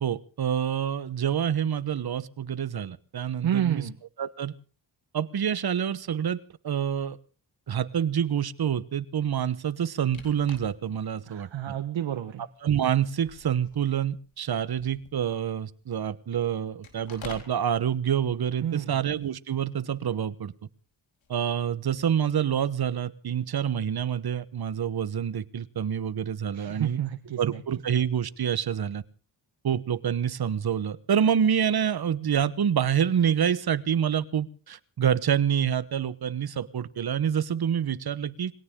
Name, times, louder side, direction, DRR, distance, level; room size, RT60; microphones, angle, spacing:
voice 1, 0.0-3.9 4.2-4.5 5.1-7.2 7.7-11.7 12.6-20.5 21.3-27.0 27.4-29.0 29.6-38.5, right 8 dB, 55° right, 15 dB, 1.2 m, -27 dB
voice 2, 3.4-3.9 11.3-12.4 18.6-18.9 26.5-27.6, right 10 dB, 75° right, 7 dB, 1.3 m, -29 dB
sound 1, 10.1-11.0 11.5-11.6 12.5-12.8 13.1-15.4 16.8-17.6 21.2-21.6, left 6 dB, 80° left, 4.2 m, -47 dB
22.0 x 17.5 x 3.7 m, 0.38 s
cardioid pair, 65°, 46 cm